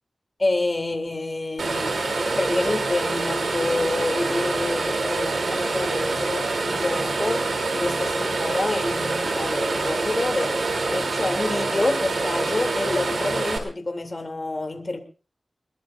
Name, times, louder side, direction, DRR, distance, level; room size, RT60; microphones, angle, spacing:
voice 1, 0.4-2.0 2.4-15.0, left 2 dB, 35° left, 4 dB, 2.9 m, -28 dB
sound 1, 1.6-13.6, right 3 dB, 85° right, 3.2 m, -26 dB
23.5 x 20.5 x 2.6 m, 0.37 s
wide cardioid pair, 90°, 0 cm